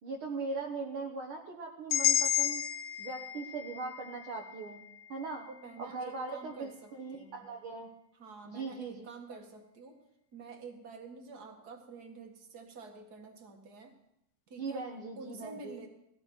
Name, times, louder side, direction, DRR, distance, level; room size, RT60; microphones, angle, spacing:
voice 1, 0.0-2.6 3.0-4.8 5.1-5.5 5.8-7.9 8.4-9.4 14.6-15.8, right 3 dB, 55° right, -1 dB, 1.4 m, -40 dB
sound 1, 1.9-5.9, left 10 dB, 70° left, 1.9 m, -33 dB
voice 2, 5.4-7.5 8.2-10.0 10.3-13.9 14.5-14.9 15.2-15.9, right 4 dB, 35° right, 3 dB, 1.7 m, -48 dB
19.0 x 15.0 x 4.5 m, 0.80 s
omnidirectional pair, 4.1 m